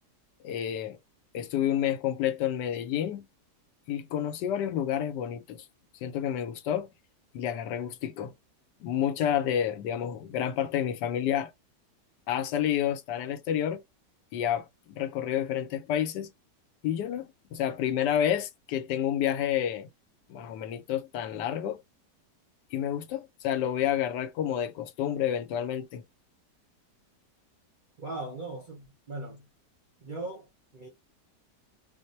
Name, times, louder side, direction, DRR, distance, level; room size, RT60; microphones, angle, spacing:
voice 1, 0.4-1.0 1.3-3.3 3.9-5.7 6.0-6.9 7.3-8.3 8.8-11.5 12.3-13.8 14.3-16.3 16.8-19.9 20.3-21.8 22.7-26.0, left 10 dB, 80° left, 1.2 m, -29 dB
voice 2, 28.0-29.5 30.0-30.9, right 2 dB, 45° right, 0.6 m, -39 dB
2.9 x 2.0 x 4.1 m
omnidirectional pair, 1.9 m